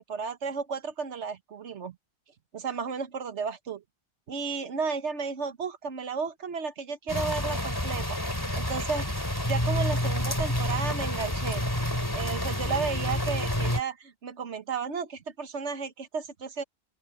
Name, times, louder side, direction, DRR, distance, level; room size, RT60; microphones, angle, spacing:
voice 1, 0.0-2.0 2.5-3.8 4.3-8.1 8.6-9.1 9.5-11.6 12.1-16.6, right 5 dB, 85° right, 1.5 m, -33 dB
sound 1, 7.1-13.8, left 1 dB, 20° left, 3.8 m, -29 dB
open air
omnidirectional pair, 1.1 m